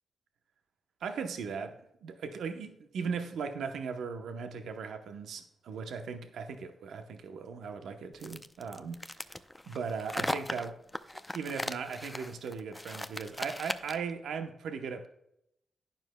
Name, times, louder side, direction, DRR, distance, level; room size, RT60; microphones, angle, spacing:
voice 1, 1.0-1.7 2.0-9.3 9.7-10.8 11.1-15.1, right 5 dB, 80° right, 7 dB, 0.9 m, -38 dB
sound 1, 8.2-14.1, left 1 dB, 15° left, 0.6 m, -38 dB
11.5 x 9.3 x 2.2 m, 0.78 s
supercardioid pair, 55°, 0 cm